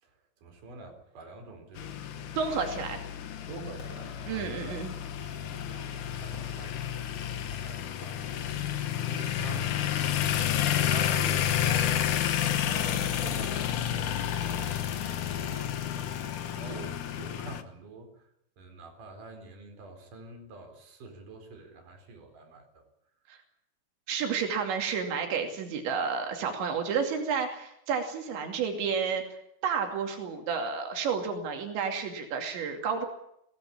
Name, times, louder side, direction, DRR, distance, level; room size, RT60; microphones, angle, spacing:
voice 1, 0.0-2.1 3.5-8.7 9.0-9.7 10.7-11.9 12.6-18.3 18.6-22.8, right 3 dB, 50° right, 4 dB, 5.6 m, -46 dB
sound 1, 1.8-17.6, left 10 dB, 65° left, 2.2 m, -30 dB
voice 2, 2.4-3.0 4.3-4.9 23.3-23.4 24.1-29.2 29.6-33.1, right 6 dB, 90° right, 3 dB, 4.9 m, -31 dB
sound 2, 3.8-4.1 4.8-5.4 6.3-7.1 7.4-7.6 8.0-8.6, left 3 dB, 35° left, 2.9 m, -49 dB
23.5 x 17.5 x 8.6 m, 0.76 s
omnidirectional pair, 5.0 m